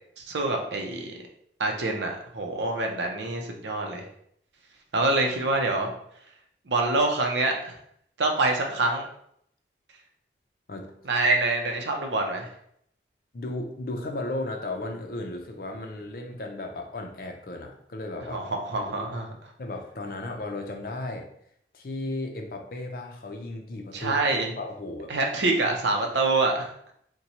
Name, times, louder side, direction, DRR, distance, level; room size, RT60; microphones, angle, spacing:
voice 1, 0.2-1.2 1.6-4.1 4.9-5.9 6.7-7.8 8.2-9.1 11.1-12.5 18.3-19.3 23.9-24.5 25.1-26.7, right 2 dB, 85° right, 2 dB, 0.6 m, -26 dB
voice 2, 5.4-5.9 10.7-10.9 13.3-18.4 18.8-19.1 19.6-21.3 21.7-25.1 25.6-25.8, left 2 dB, 55° left, 3 dB, 0.5 m, -35 dB
4.1 x 2.2 x 2.8 m, 0.69 s
head